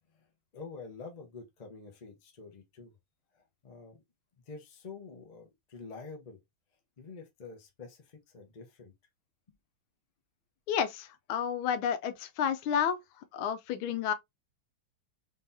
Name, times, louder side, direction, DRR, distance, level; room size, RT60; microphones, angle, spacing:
voice 1, 0.5-2.9 3.3-4.0 4.5-6.4 7.0-8.9 9.5-9.6, left 4 dB, 50° left, 0.5 m, -47 dB
voice 2, 10.7-14.1, left 8 dB, 85° left, 1.4 m, -31 dB
3.9 x 3.3 x 2.7 m
omnidirectional pair, 2.2 m